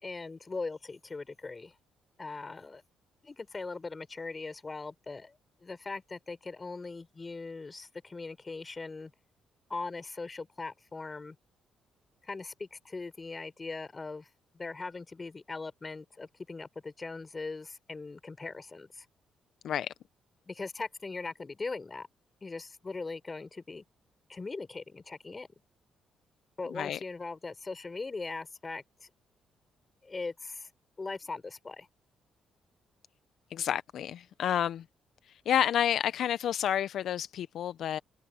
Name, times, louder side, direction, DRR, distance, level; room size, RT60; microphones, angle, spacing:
voice 1, 0.0-1.7 2.2-2.8 3.2-9.1 9.7-11.4 12.2-14.3 14.5-19.1 20.5-22.1 22.4-23.8 24.3-25.5 26.6-29.1 30.0-30.7 31.0-31.9, left 3 dB, 25° left, 4.5 m, -40 dB
voice 2, 33.5-34.8 35.5-38.0, left 10 dB, 70° left, 0.5 m, -29 dB
cardioid pair, 90°, 0 cm